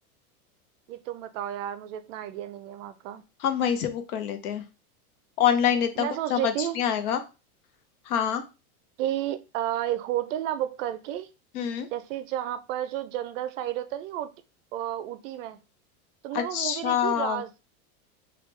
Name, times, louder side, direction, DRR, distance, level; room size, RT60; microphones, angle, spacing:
voice 1, 0.9-3.2 6.0-6.8 9.0-11.3 11.9-14.3 14.7-15.6 16.2-17.5, right 12 dB, 60° right, 0.5 m, -32 dB
voice 2, 3.4-4.6 5.4-7.2 8.1-8.4 11.5-11.9 16.3-17.4, left 9 dB, 80° left, 0.8 m, -26 dB
3.4 x 2.4 x 3.1 m
supercardioid pair, 145°, 44 cm